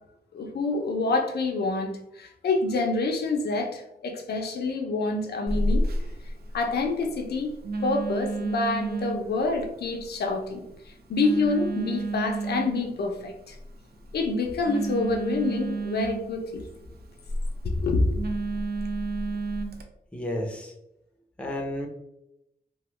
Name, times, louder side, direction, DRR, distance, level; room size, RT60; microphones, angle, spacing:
voice 1, 0.3-6.1 6.5-7.5 7.8-10.6 11.1-13.6 14.1-16.6 17.6-18.2, left 3 dB, 85° left, 3 dB, 0.5 m, -27 dB
Telephone, 5.5-19.8, right 2 dB, 70° right, 0.4 m, -32 dB
voice 2, 20.1-20.7 21.4-21.9, left 1 dB, 5° left, 1 dB, 0.5 m, -31 dB
2.9 x 2.1 x 3.0 m, 0.84 s
wide cardioid pair, 110°, 17 cm